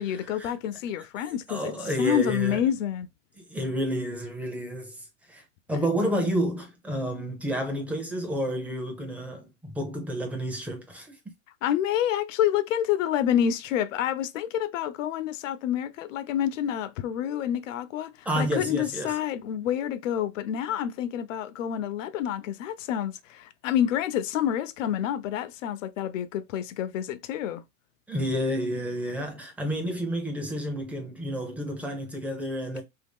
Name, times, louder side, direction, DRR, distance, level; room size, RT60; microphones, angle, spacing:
voice 1, 0.0-1.7 2.0-3.1 11.6-27.6, left 10 dB, 80° left, 0.6 m, -28 dB
voice 2, 1.5-2.6 3.4-11.2 18.3-19.1 28.1-32.8, equal, 5° right, 0.5 m, -30 dB
3.0 x 2.7 x 3.4 m
supercardioid pair, 150°, 37 cm